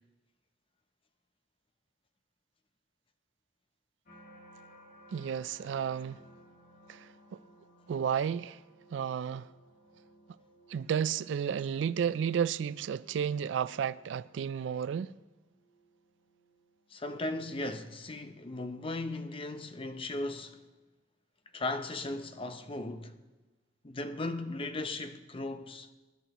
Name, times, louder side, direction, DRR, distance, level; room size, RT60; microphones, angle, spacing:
sound 1, 4.0-19.2 19.8-20.2, equal, 45° left, 1.9 m, -60 dB
voice 1, 5.1-6.2 6.9-7.4 7.9-8.6 8.9-9.5 10.7-15.1, right 8 dB, 70° right, 0.3 m, -32 dB
voice 2, 16.9-20.6 21.5-23.2 23.8-25.9, left 2 dB, 30° left, 0.7 m, -37 dB
23.0 x 11.0 x 3.0 m
head